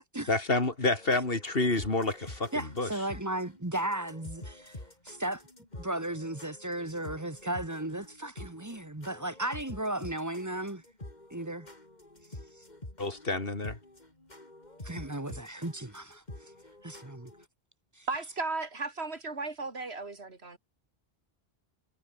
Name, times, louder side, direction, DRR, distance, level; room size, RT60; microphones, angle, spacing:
voice 1, 0.3-2.9 13.0-13.8, left 2 dB, 65° left, 3.5 m, -29 dB
sound 1, 0.9-17.4, left 1 dB, 45° left, 4.2 m, -48 dB
voice 2, 2.5-4.8 5.0-5.4 5.8-10.8 11.3-11.7 14.8-16.2 16.8-17.3 18.0-18.1, right 1 dB, 15° right, 1.4 m, -35 dB
voice 3, 18.1-20.6, right 3 dB, 90° right, 3.1 m, -35 dB
omnidirectional pair, 1.1 m